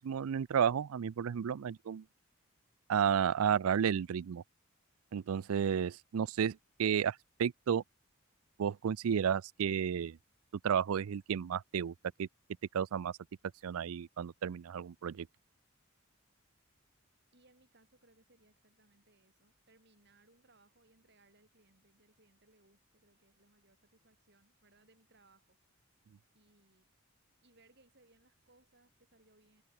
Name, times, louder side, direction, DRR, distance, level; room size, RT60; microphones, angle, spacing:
voice 1, 0.0-2.0 2.9-4.4 5.1-7.8 8.6-10.2 10.6-11.9 12.2-12.3 12.7-13.1 13.6-15.3, right 8 dB, 85° right, 0.4 m, -32 dB
voice 2, 17.3-25.6 26.3-26.9 27.4-29.6, right 2 dB, 50° right, 5.7 m, -68 dB
head